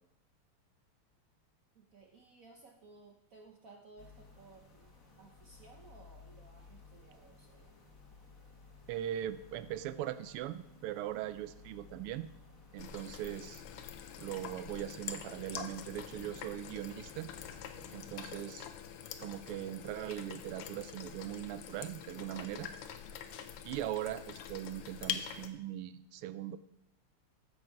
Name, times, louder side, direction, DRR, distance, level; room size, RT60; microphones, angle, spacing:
voice 1, 1.7-7.8, right 3 dB, 55° right, 2 dB, 0.9 m, -58 dB
sound 1, 4.0-18.2, left 3 dB, 40° left, 1.8 m, -57 dB
voice 2, 8.9-12.3 12.7-13.6 14.2-17.3 17.9-18.7 19.2-22.7 23.6-26.6, right 12 dB, 90° right, 14 dB, 1.6 m, -40 dB
sound 2, 12.8-25.5, left 9 dB, 80° left, 1.7 m, -45 dB
14.0 x 6.6 x 4.6 m, 0.80 s
omnidirectional pair, 2.4 m